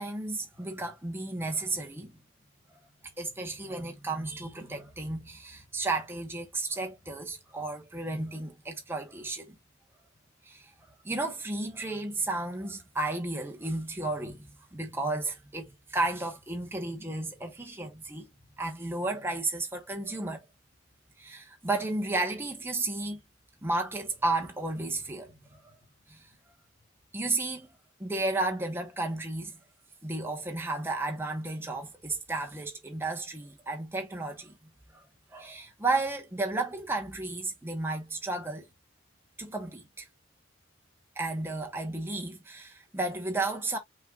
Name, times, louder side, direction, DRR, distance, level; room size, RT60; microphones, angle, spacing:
voice 1, 0.0-2.2 3.2-9.6 10.4-10.7 11.0-18.3 18.6-20.4 21.2-23.2 23.6-25.3 25.6-25.7 26.1-26.3 27.1-27.7 28.0-29.6 30.0-34.5 35.3-38.7 39.4-40.1 41.1-43.8, right 2 dB, 10° right, 1.0 m, -33 dB
5.5 x 3.8 x 2.3 m
head